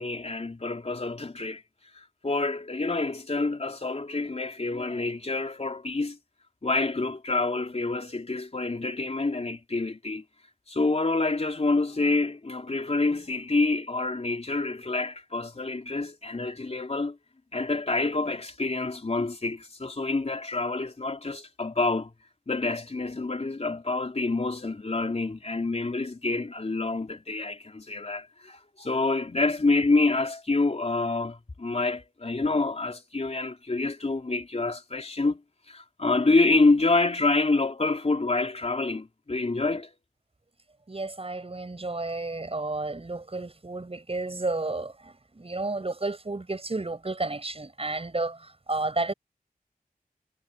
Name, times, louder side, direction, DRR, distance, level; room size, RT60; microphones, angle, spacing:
voice 1, 0.0-1.6 1.9-6.2 6.6-10.2 10.7-17.2 17.5-22.1 22.5-35.4 35.7-39.9, left 3 dB, 45° left, 3.7 m, -27 dB
voice 2, 40.9-48.4 48.7-49.1, right 2 dB, 40° right, 7.9 m, -31 dB
wide cardioid pair, 80°, 15 cm